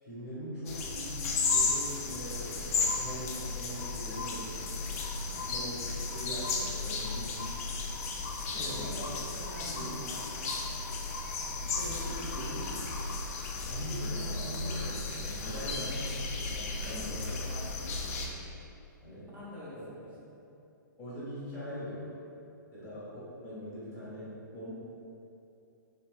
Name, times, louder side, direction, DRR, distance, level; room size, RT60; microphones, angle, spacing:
voice 1, 0.0-4.9 5.3-5.8 6.1-7.4 8.0-8.1 8.6-9.0 9.5-9.9 11.7-12.8 13.7-17.2 19.0-19.3 21.0-22.1 22.7-24.7, equal, 20° left, -10 dB, 1.2 m, -41 dB
sound 1, 0.7-18.3, left 4 dB, 45° left, 0.4 m, -34 dB
voice 2, 8.5-10.9 16.7-18.3 19.3-20.3 22.7-22.9, left 1 dB, 15° right, -9 dB, 0.8 m, -47 dB
sound 2, 13.0-13.2 14.4-14.5 14.8-15.2 15.6-16.1 16.5-16.6 16.8-17.7 18.2-18.7, right 3 dB, 65° right, 0.4 m, -51 dB
2.7 x 2.1 x 3.3 m, 2.8 s
figure-of-eight pair, 120°, 11 cm